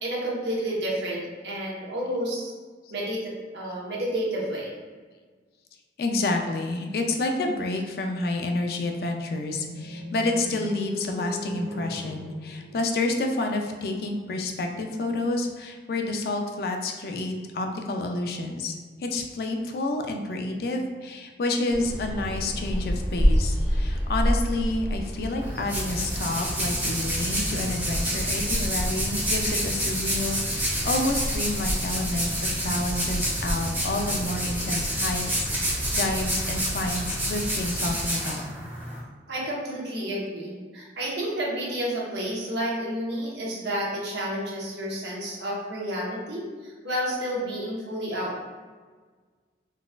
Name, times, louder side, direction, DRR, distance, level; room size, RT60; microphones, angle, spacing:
voice 1, 0.0-2.5 2.9-4.7 39.3-48.4, equal, 80° right, -4 dB, 0.9 m, -30 dB
voice 2, 6.0-18.7 19.0-32.3 32.6-38.4, left 2 dB, 55° left, 3 dB, 0.3 m, -29 dB
sound 1, 9.2-13.4, left 1 dB, 45° right, 0.7 m, -37 dB
Bird vocalization bird call bird song, 21.7-38.1, equal, 35° left, 1.3 m, -30 dB
sound 2, 25.4-39.0, right 1 dB, 10° right, 0.7 m, -29 dB
3.9 x 2.3 x 2.2 m, 1.5 s
head